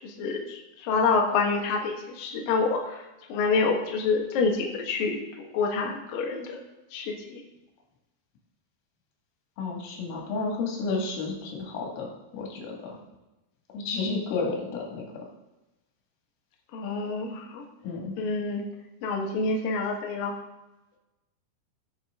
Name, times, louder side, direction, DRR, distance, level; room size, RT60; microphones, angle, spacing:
voice 1, 0.0-6.6 6.9-7.4 16.7-17.7 18.2-18.6 19.0-20.4, left 4 dB, 65° left, 1 dB, 2.5 m, -27 dB
voice 2, 9.6-13.0 13.7-15.1 17.8-18.1, left 3 dB, 85° left, 0 dB, 4.5 m, -31 dB
17.0 x 6.0 x 3.7 m, 1.0 s
omnidirectional pair, 5.6 m